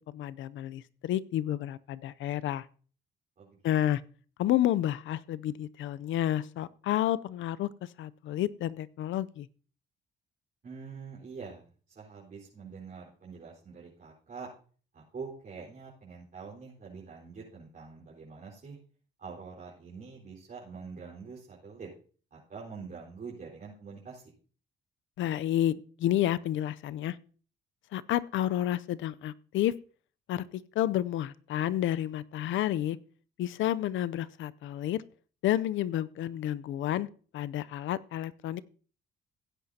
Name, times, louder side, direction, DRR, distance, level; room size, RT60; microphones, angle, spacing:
voice 1, 0.1-2.7 3.6-4.0 4.4-9.5 25.2-27.2 27.9-29.7 30.3-33.0 33.4-35.0 35.4-37.1 37.3-38.6, left 12 dB, 75° left, 17 dB, 0.6 m, -30 dB
voice 2, 10.6-14.5 14.9-18.8 19.2-21.9 22.3-24.2, right 5 dB, 45° right, -6 dB, 4.4 m, -45 dB
16.5 x 9.7 x 2.8 m, 0.41 s
cardioid pair, 90°, 20 cm